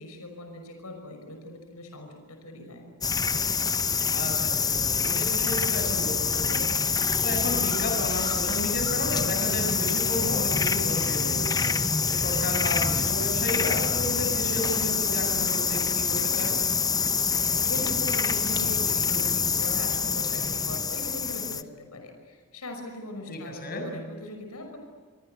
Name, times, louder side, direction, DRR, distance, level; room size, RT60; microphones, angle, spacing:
voice 1, 0.0-2.9 17.6-24.8, left 1 dB, 80° left, 4 dB, 5.7 m, -40 dB
sound 1, 3.0-21.6, left 5 dB, 15° left, 0.8 m, -26 dB
voice 2, 4.1-11.7 12.1-16.6 23.3-23.8, left 1 dB, 45° left, 3 dB, 7.1 m, -33 dB
29.0 x 24.0 x 8.0 m, 1.5 s
head